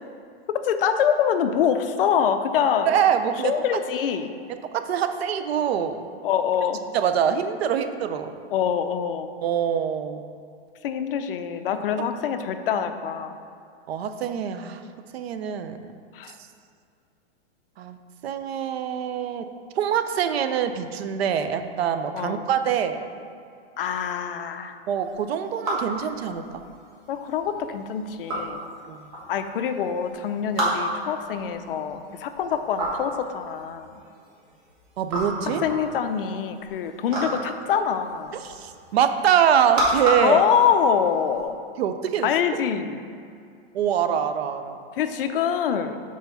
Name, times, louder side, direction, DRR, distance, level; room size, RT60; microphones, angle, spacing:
voice 1, 0.5-2.9 3.4-4.3 6.2-6.8 8.5-9.3 10.8-13.4 16.1-16.4 22.1-22.5 23.8-24.7 27.1-28.7 29.3-34.0 35.4-38.4 40.2-41.6 42.2-43.0 45.0-46.0, left 8 dB, 60° left, 9 dB, 0.5 m, -25 dB
voice 2, 2.8-3.5 4.8-6.0 6.9-8.4 9.4-10.2 13.9-14.8 15.1-15.8 17.8-18.0 18.2-19.5 19.8-23.0 24.9-26.6 28.9-29.1 35.0-35.6 38.4-40.4 41.8-42.3 43.7-44.8, right 8 dB, 70° right, 9 dB, 0.6 m, -24 dB
sound 1, 25.1-41.4, right 1 dB, 35° right, 1.5 m, -31 dB
4.6 x 4.5 x 5.5 m, 2.4 s
supercardioid pair, 165°, 32 cm